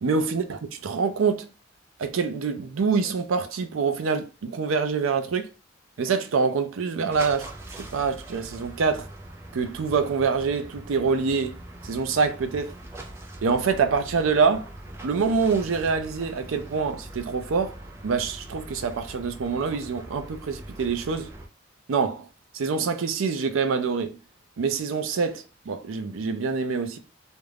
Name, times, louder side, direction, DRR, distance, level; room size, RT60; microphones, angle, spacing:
voice 1, 0.0-1.5 2.0-5.5 6.0-7.5 7.8-9.1 9.5-11.5 11.8-12.7 13.4-14.7 15.0-17.7 18.0-21.3 21.9-22.3 22.5-24.2 24.6-27.0, right 5 dB, 80° right, 0.4 m, -25 dB
sound 1, 7.1-21.5, right 1 dB, 15° right, 0.4 m, -42 dB
2.4 x 2.1 x 3.2 m
head